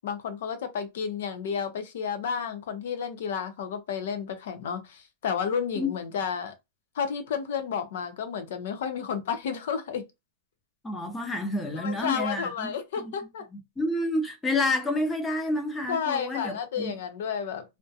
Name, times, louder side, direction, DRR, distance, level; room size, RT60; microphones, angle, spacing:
voice 1, 0.0-6.5 6.9-10.0 11.7-13.5 15.9-17.8, left 7 dB, 70° left, 0.6 m, -31 dB
voice 2, 10.8-13.2 13.5-16.9, left 2 dB, 10° left, 0.6 m, -29 dB
2.4 x 2.1 x 2.7 m
supercardioid pair, 160°, 0 cm